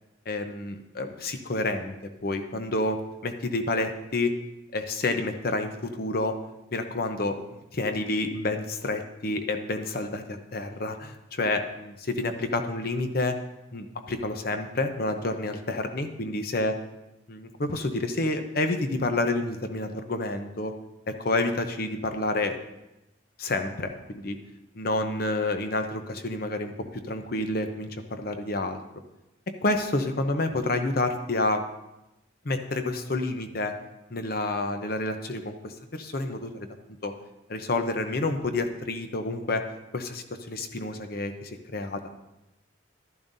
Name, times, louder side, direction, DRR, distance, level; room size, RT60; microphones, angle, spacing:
voice 1, 0.3-1.9 2.2-4.3 4.7-6.4 6.7-13.4 13.7-16.7 17.3-20.7 21.1-22.6 23.4-24.4 24.7-28.8 29.6-31.6 32.4-33.7 34.1-36.7 37.0-37.1 37.5-39.6 39.9-42.0, left 2 dB, 50° left, 7 dB, 0.8 m, -29 dB
12.0 x 11.0 x 2.7 m, 0.95 s
head